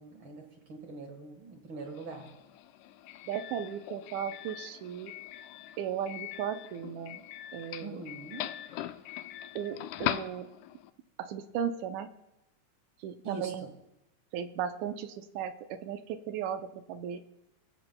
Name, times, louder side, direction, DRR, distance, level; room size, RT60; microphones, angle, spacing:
voice 1, 0.0-2.3 7.8-8.5 13.2-13.7, right 3 dB, 50° right, 3 dB, 1.8 m, -43 dB
Doorbell, 1.9-10.9, left 13 dB, 85° left, 2.0 m, -41 dB
voice 2, 3.3-5.1 5.8-7.2 7.5-8.0 9.6-10.5 11.2-12.1 13.0-13.7 14.3-17.2, right 8 dB, 80° right, 9 dB, 2.0 m, -36 dB
23.0 x 13.5 x 2.2 m, 0.90 s
omnidirectional pair, 3.5 m